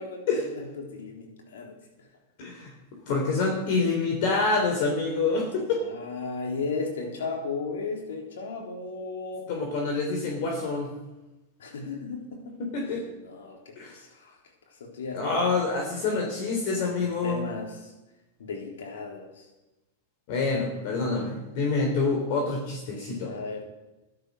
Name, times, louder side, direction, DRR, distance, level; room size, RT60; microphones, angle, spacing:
voice 1, 0.0-2.1 5.8-9.5 11.6-14.4 14.7-15.4 16.1-16.3 16.7-17.9 18.4-19.5 23.2-23.6, left 4 dB, 80° left, 1 dB, 3.7 m, -36 dB
voice 2, 2.4-2.7 3.1-5.8 9.5-10.9 12.7-13.0 13.8-14.0 15.1-17.4 20.3-23.3, left 3 dB, 55° left, 0 dB, 3.6 m, -27 dB
12.0 x 12.0 x 6.3 m, 1.0 s
hypercardioid pair, 120°, 0 cm